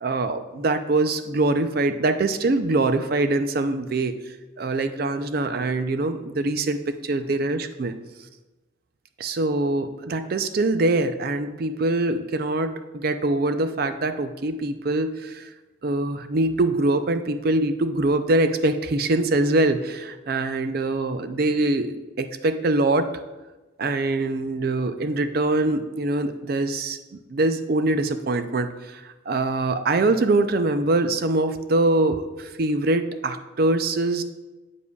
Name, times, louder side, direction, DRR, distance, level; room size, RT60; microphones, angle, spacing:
voice 1, 0.0-4.2 4.6-8.0 9.2-15.5 15.8-23.1 23.8-34.2, right 2 dB, 50° right, 9 dB, 0.4 m, -23 dB
8.2 x 7.2 x 2.3 m, 1.1 s
head